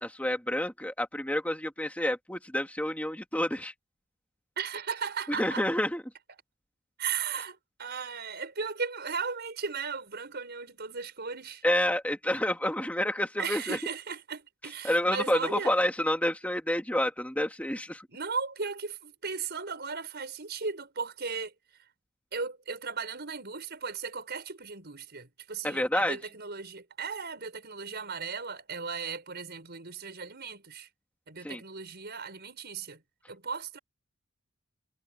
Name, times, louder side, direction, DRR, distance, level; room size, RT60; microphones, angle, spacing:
voice 1, 0.0-3.7 5.3-6.0 11.6-13.8 14.8-18.1 25.6-26.2 31.4-31.6, left 1 dB, 5° left, 2.4 m, -29 dB
voice 2, 4.6-5.6 7.0-11.6 13.4-15.8 18.1-21.5 22.3-30.9 31.3-33.0 33.3-33.8, right 5 dB, 50° right, 5.7 m, -36 dB
head